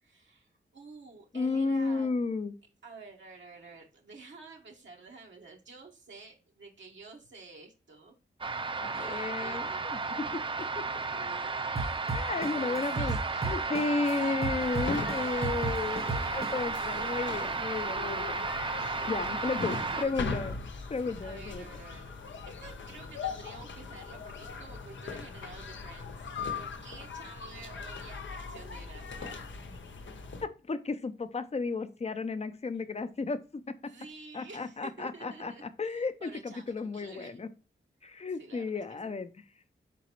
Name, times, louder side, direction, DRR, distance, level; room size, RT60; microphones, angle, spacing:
voice 1, 0.0-2.1 2.8-8.1 8.8-10.4 11.2-13.6 14.1-14.4 14.8-16.7 19.0-20.4 21.2-22.1 22.5-26.3 26.6-29.4 33.8-37.4 38.3-39.1, right 4 dB, 70° right, 0 dB, 1.0 m, -50 dB
voice 2, 1.3-2.6 8.8-10.0 10.8-10.9 11.1-11.5 12.1-13.2 13.5-18.5 18.8-20.5 20.9-21.6 30.4-33.4 34.3-37.5 38.0-39.3, left 4 dB, 35° left, 12 dB, 0.6 m, -33 dB
sound 1, 8.4-20.0, right 4 dB, 25° right, 0.4 m, -33 dB
sound 2, 11.8-14.1 14.4-16.8, right 3 dB, 50° right, 0.9 m, -33 dB
sound 3, 14.6-30.4, left 4 dB, 70° left, 0.6 m, -40 dB
4.0 x 3.7 x 3.0 m, 0.34 s
cardioid pair, 45°, 20 cm